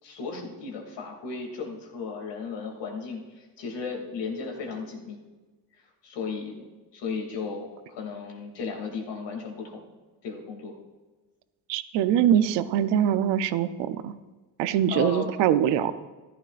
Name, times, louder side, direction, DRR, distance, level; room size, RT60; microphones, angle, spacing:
voice 1, 0.0-5.2 5.7-6.7 6.9-9.8 10.2-10.7 14.9-15.3 15.8-15.9, left 5 dB, 80° left, 1 dB, 2.7 m, -35 dB
voice 2, 11.7-14.1 14.6-15.9, right 10 dB, 85° right, 12 dB, 0.7 m, -23 dB
14.0 x 11.5 x 2.5 m, 1.3 s
cardioid pair, 95°, 42 cm